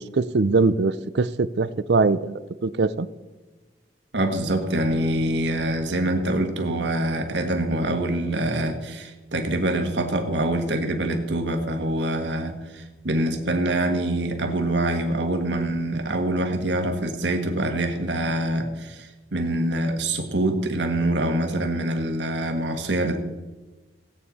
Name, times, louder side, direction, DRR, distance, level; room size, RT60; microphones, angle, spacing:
voice 1, 0.0-3.1, right 3 dB, 70° right, 16 dB, 0.5 m, -22 dB
voice 2, 4.1-23.3, right 1 dB, 85° right, 5 dB, 1.6 m, -25 dB
17.0 x 9.0 x 4.2 m, 1.2 s
head